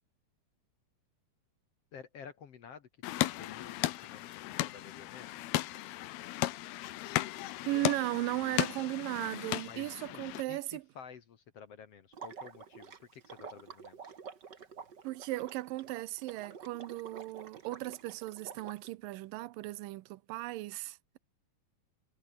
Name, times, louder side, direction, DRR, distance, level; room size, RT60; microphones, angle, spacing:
voice 1, 1.9-5.5 9.7-14.1, left 7 dB, 55° left, 2.0 m, -52 dB
sound 1, 3.0-10.4, left 16 dB, 85° left, 3.0 m, -35 dB
voice 2, 7.7-10.8 15.0-21.2, right 18 dB, 75° right, 2.2 m, -36 dB
Water / Liquid, 12.1-18.9, right 6 dB, 35° right, 2.0 m, -49 dB
omnidirectional pair, 4.4 m